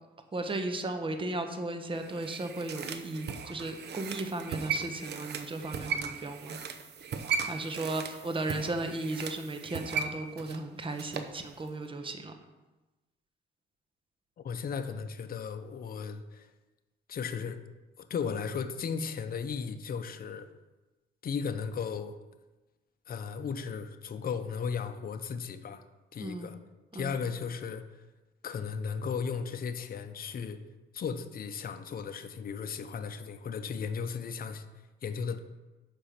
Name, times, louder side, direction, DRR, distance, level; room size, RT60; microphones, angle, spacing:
voice 1, 0.3-6.6 7.3-12.3 26.2-26.5 26.9-27.2, right 2 dB, 25° right, 6 dB, 1.0 m, -35 dB
sound 1, 1.9-11.4 11.7-11.8, right 6 dB, 55° right, 0.7 m, -37 dB
voice 2, 14.4-16.5 17.1-17.6 18.0-20.5 21.2-22.2 23.1-25.8 26.1-26.6 26.9-27.9 28.4-30.6 30.9-34.6 35.0-35.4, left 6 dB, 50° left, 8 dB, 0.7 m, -35 dB
6.7 x 5.3 x 5.9 m, 1.1 s
cardioid pair, 90°, 20 cm